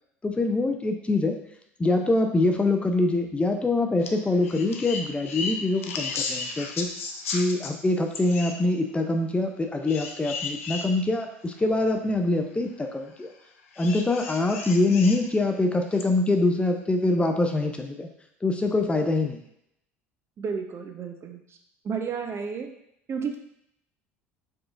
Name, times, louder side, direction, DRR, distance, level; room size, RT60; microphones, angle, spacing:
voice 1, 0.2-1.4 1.8-6.9 7.3-13.3 13.8-18.1 18.4-19.4, left 2 dB, 15° left, 4 dB, 0.5 m, -24 dB
sound 1, 4.0-4.1 4.4-7.7 8.1-8.6 9.9-10.9 11.6-11.7 13.7-15.2 15.9-16.0, left 4 dB, 80° left, 0.5 m, -34 dB
voice 2, 20.4-21.4 21.8-22.7 23.1-23.4, right 6 dB, 35° right, 5 dB, 0.6 m, -31 dB
4.7 x 3.7 x 2.5 m, 0.75 s
hypercardioid pair, 65°, 7 cm